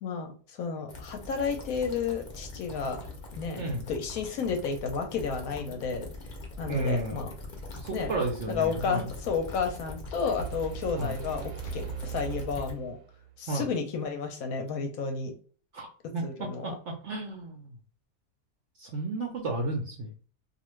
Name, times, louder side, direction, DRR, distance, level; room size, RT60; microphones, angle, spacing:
voice 1, 0.0-3.0 3.3-6.1 6.6-7.3 7.9-8.1 8.5-13.0 13.4-15.3 16.2-16.8, left 5 dB, 70° left, 5 dB, 1.0 m, -32 dB
sound 1, 0.9-12.7, left 2 dB, 50° left, 0.5 m, -42 dB
voice 2, 6.7-7.2 7.8-9.1 11.0-11.2 13.5-13.6 15.7-15.9 16.1-17.7 18.8-20.1, right 2 dB, 65° right, 1 dB, 0.7 m, -32 dB
sound 2, 10.4-13.4, right 10 dB, 85° right, 1.2 m, -40 dB
2.5 x 2.4 x 3.0 m, 0.41 s
omnidirectional pair, 1.7 m